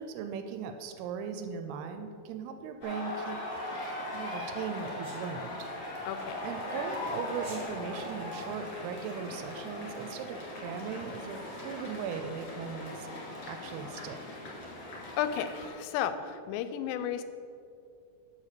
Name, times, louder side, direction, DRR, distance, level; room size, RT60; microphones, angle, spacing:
voice 1, 0.0-3.4 4.1-5.6 6.4-13.1 13.5-14.2, right 6 dB, 80° right, 7 dB, 2.5 m, -38 dB
sound 1, 2.8-15.7, left 1 dB, 40° left, 2.1 m, -39 dB
Sneeze, 5.0-5.2 7.3-7.7, right 2 dB, 45° right, 1.5 m, -47 dB
voice 2, 6.1-6.4 15.2-17.2, left 9 dB, 85° left, 11 dB, 2.7 m, -33 dB
7.3 x 6.3 x 6.7 m, 2.4 s
omnidirectional pair, 4.9 m